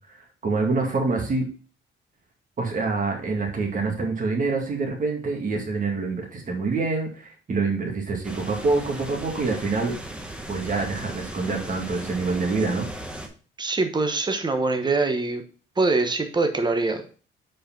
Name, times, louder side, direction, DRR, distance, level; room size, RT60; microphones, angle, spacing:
voice 1, 0.1-1.5 2.6-9.9 10.5-12.9, right 3 dB, 40° right, 1 dB, 2.2 m, -26 dB
sound 1, 8.2-13.3, right 1 dB, 5° right, 1.4 m, -37 dB
voice 2, 13.6-15.4 15.8-17.2, right 3 dB, 20° right, 6 dB, 1.1 m, -24 dB
5.0 x 4.9 x 5.9 m, 0.39 s
cardioid pair, 90°, 20 cm